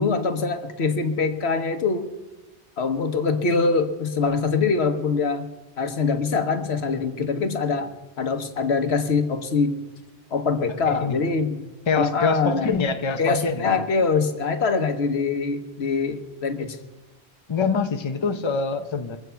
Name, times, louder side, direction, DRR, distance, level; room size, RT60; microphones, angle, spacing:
voice 1, 0.0-2.1 2.8-9.8 10.3-11.6 12.0-12.7 13.2-16.8, left 4 dB, 75° left, 8 dB, 1.4 m, -24 dB
voice 2, 10.9-11.2 11.9-13.6 17.5-19.2, left 5 dB, 30° left, 7 dB, 0.8 m, -25 dB
23.5 x 8.1 x 5.7 m, 1.1 s
omnidirectional pair, 1.1 m